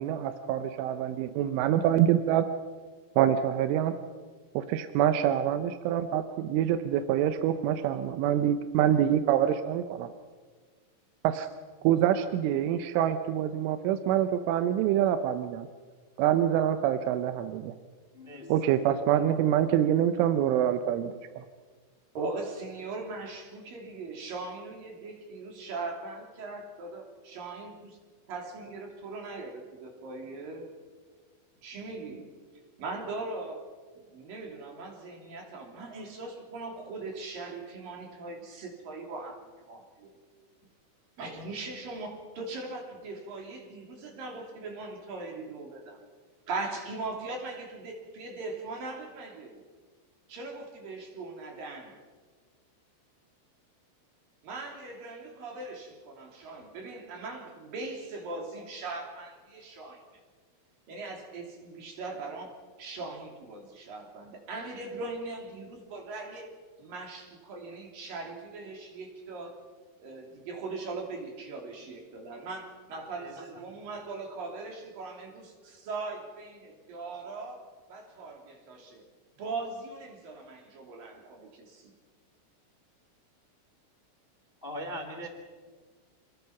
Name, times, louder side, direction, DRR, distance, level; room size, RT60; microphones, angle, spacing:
voice 1, 0.0-2.5 3.2-3.9 4.5-10.1 11.2-11.5 11.8-15.7 16.2-17.7 18.5-21.4, right 10 dB, 80° right, 9 dB, 3.2 m, -26 dB
voice 2, 18.1-19.3 72.9-73.6 84.6-85.3, equal, 40° left, 4 dB, 0.7 m, -42 dB
voice 3, 22.1-28.0 28.3-30.7 31.6-32.3 32.8-33.7 34.1-40.1 41.2-46.0 46.5-49.6 50.3-52.0 54.4-60.0 60.9-66.5 66.8-69.6 70.0-79.0 79.4-81.9, right 3 dB, 50° right, 2 dB, 4.3 m, -40 dB
28.0 x 20.0 x 5.9 m, 1.5 s
omnidirectional pair, 5.6 m